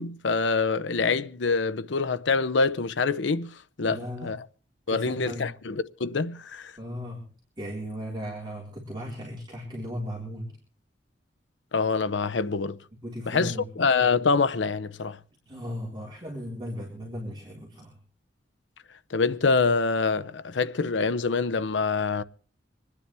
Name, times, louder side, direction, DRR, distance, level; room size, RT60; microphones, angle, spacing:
voice 1, 0.0-4.4 4.9-6.7 11.7-12.8 13.3-15.2 19.1-22.2, left 4 dB, 85° left, 0.7 m, -25 dB
voice 2, 3.9-4.3 4.9-5.5 6.8-7.3 7.6-10.5 13.0-13.6 15.4-18.0, equal, 25° right, 4.0 m, -36 dB
26.0 x 10.0 x 3.4 m
head